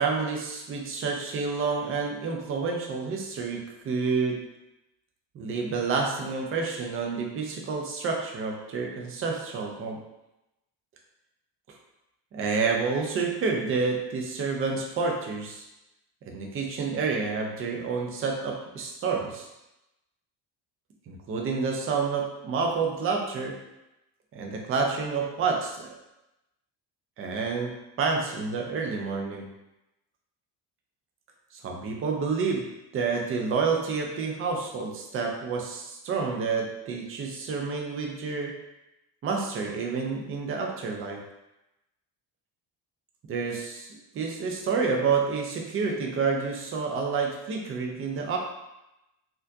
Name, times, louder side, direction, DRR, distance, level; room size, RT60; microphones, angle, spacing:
voice 1, 0.0-4.4 5.3-10.0 12.3-15.6 16.3-19.5 21.1-23.6 24.3-26.0 27.2-29.5 31.5-38.5 39.2-41.2 43.3-48.4, right 4 dB, 30° right, 1 dB, 0.4 m, -29 dB
4.3 x 2.4 x 2.6 m, 0.93 s
cardioid pair, 180°, 43 cm